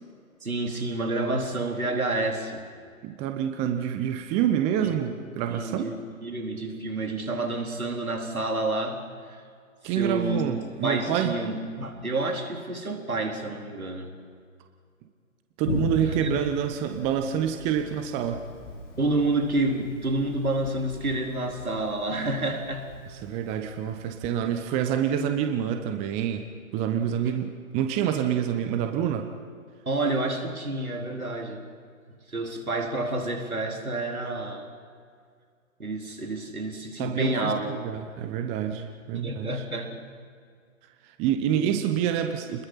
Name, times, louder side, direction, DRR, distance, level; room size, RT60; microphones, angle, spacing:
voice 1, 0.4-2.6 4.8-4.9 5.5-9.4 9.8-14.1 16.2-16.4 19.0-22.9 29.9-31.6 32.1-34.7 35.8-37.8 39.1-40.0 41.5-41.9, right 2 dB, 80° right, 3 dB, 4.2 m, -29 dB
voice 2, 3.0-5.9 9.8-11.3 15.6-18.5 23.2-26.4 26.7-29.3 37.0-39.5 41.0-42.7, right 9 dB, 15° right, 6 dB, 0.9 m, -27 dB
Thunder, 15.6-25.1, left 3 dB, 55° left, 3.3 m, -38 dB
29.5 x 21.5 x 5.8 m, 2.1 s
figure-of-eight pair, 135°, 42 cm